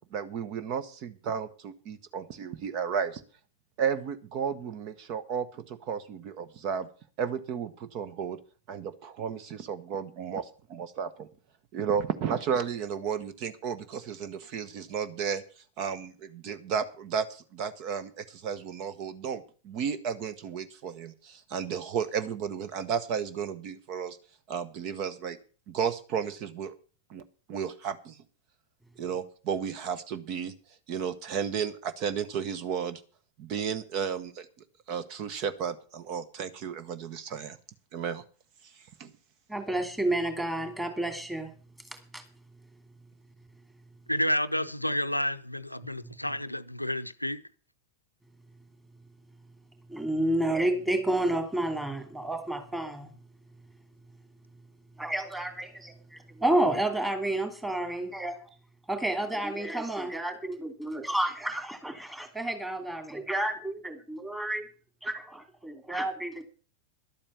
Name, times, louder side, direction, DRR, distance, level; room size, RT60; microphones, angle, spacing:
voice 1, 0.1-3.2 3.8-6.9 7.2-8.4 8.7-11.3 11.7-15.4 15.8-24.2 24.5-25.4 25.7-26.7 27.1-27.2 27.5-28.2 29.0-30.5 30.9-33.0 33.4-34.5 34.9-37.6 37.9-38.2 38.6-38.7 39.0-39.1, right 7 dB, 40° right, 1.1 m, -33 dB
voice 2, 39.5-41.5 42.1-42.2 49.9-53.1 55.0-58.4 58.9-64.7 65.0-66.4, right 1 dB, 10° right, 2.8 m, -30 dB
voice 3, 44.1-47.4, left 1 dB, 90° left, 0.6 m, -30 dB
12.0 x 8.7 x 7.0 m
figure-of-eight pair, 90°, 0 cm